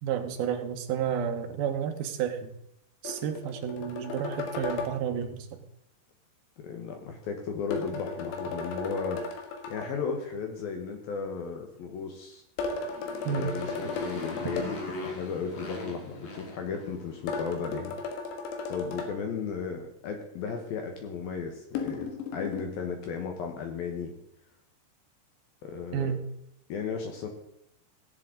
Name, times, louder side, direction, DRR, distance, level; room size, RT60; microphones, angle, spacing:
voice 1, 0.0-2.5 3.0-5.5 13.3-13.6 25.9-26.3, right 8 dB, 70° right, 5 dB, 2.5 m, -31 dB
sound 1, 3.1-5.0 7.7-9.9 12.6-14.7 17.3-19.1 21.8-22.6, left 4 dB, 90° left, 3.8 m, -35 dB
voice 2, 6.6-9.2 9.7-12.4 13.3-17.9 18.7-24.1 25.6-26.2 26.7-27.3, left 5 dB, 70° left, 4 dB, 2.4 m, -35 dB
Motorcycle, 12.6-17.2, left 2 dB, 55° left, 2.1 m, -40 dB
17.0 x 8.2 x 3.8 m, 0.78 s
omnidirectional pair, 5.3 m